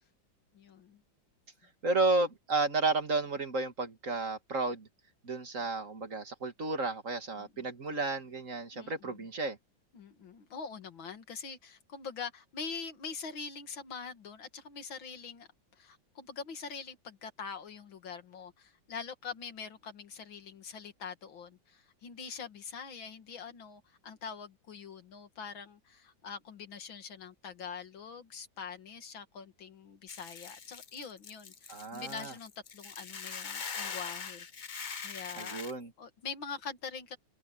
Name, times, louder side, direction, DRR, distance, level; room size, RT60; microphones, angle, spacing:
voice 1, 0.5-1.0 7.4-7.6 8.7-9.2 9.9-15.5 15.8-35.7 36.0-37.2, left 6 dB, 90° left, 2.7 m, -44 dB
voice 2, 1.8-4.9 5.2-9.6 31.7-32.3 35.4-35.9, right 3 dB, 40° right, 2.4 m, -32 dB
Hiss / Boiling, 30.1-35.7, left 6 dB, 45° left, 0.6 m, -42 dB
omnidirectional pair, 2.1 m